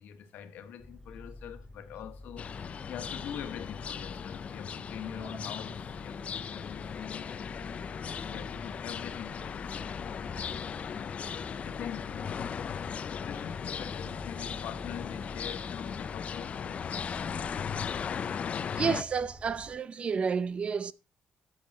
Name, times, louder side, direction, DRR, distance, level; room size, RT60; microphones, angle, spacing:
voice 1, 0.0-2.5 2.9-7.3 8.3-10.1 11.6-12.4 13.2-17.0, left 9 dB, 85° left, 1.4 m, -44 dB
sound 1, 0.8-19.7, left 1 dB, 10° left, 3.3 m, -48 dB
sound 2, 2.4-19.0, left 7 dB, 50° left, 0.6 m, -37 dB
voice 2, 18.7-20.9, right 6 dB, 40° right, 0.6 m, -30 dB
12.5 x 7.3 x 4.3 m
cardioid pair, 110°, 3 cm